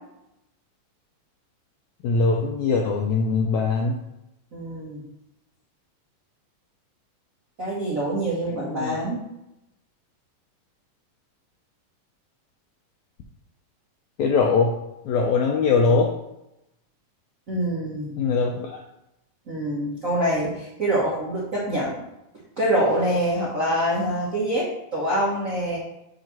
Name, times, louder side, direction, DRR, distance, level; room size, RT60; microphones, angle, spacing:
voice 1, 2.0-4.0 8.5-9.0 14.2-14.7 15.1-16.1 18.2-18.8, left 4 dB, 90° left, 1 dB, 1.6 m, -21 dB
voice 2, 4.5-5.0 7.6-9.2 17.5-18.1 19.5-22.0 22.6-25.8, right 1 dB, 75° right, -6 dB, 0.7 m, -25 dB
7.6 x 3.0 x 6.0 m, 0.87 s
omnidirectional pair, 3.9 m